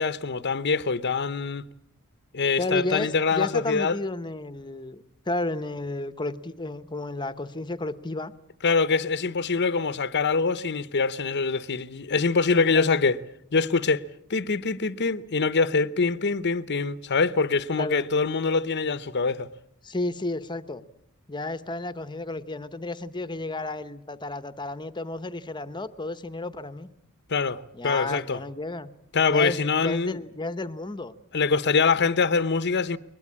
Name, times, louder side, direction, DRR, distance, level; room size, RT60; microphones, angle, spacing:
voice 1, 0.0-1.6 2.3-4.0 8.6-13.2 13.5-14.0 14.3-19.5 27.3-28.4 29.1-30.2 31.3-33.0, left 4 dB, 50° left, 0.8 m, -24 dB
voice 2, 2.6-8.3 12.5-13.0 17.8-18.1 19.8-20.8 21.3-26.9 27.7-28.9 29.3-31.1, left 2 dB, 20° left, 0.9 m, -32 dB
21.5 x 20.5 x 8.7 m
head